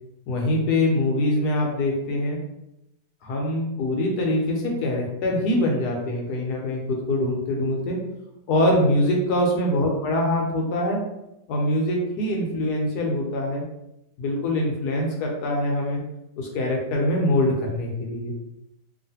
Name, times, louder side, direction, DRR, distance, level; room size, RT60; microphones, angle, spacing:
voice 1, 0.3-2.4 3.2-8.0 8.5-11.0 11.5-13.6 14.2-16.0 16.4-18.3, left 1 dB, 70° left, 0 dB, 1.1 m, -24 dB
3.0 x 2.5 x 2.7 m, 0.87 s
omnidirectional pair, 1.9 m